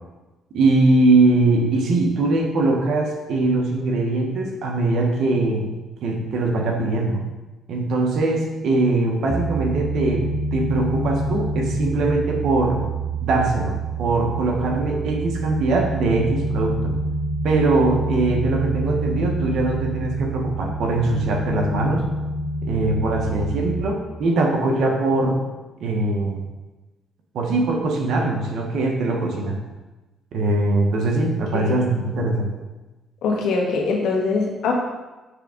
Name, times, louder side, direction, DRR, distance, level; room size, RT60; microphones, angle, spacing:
voice 1, 0.5-7.2 7.7-12.8 13.2-16.9 17.4-22.1 22.6-25.4 25.8-26.4 27.3-29.6 30.3-32.5, right 2 dB, 75° right, 2 dB, 1.1 m, -21 dB
sound 1, 9.3-23.8, right 2 dB, 20° left, 1.7 m, -27 dB
voice 2, 33.2-34.7, left 4 dB, 85° left, -1 dB, 1.3 m, -22 dB
6.6 x 3.6 x 5.1 m, 1.2 s
cardioid pair, 90°, 0 cm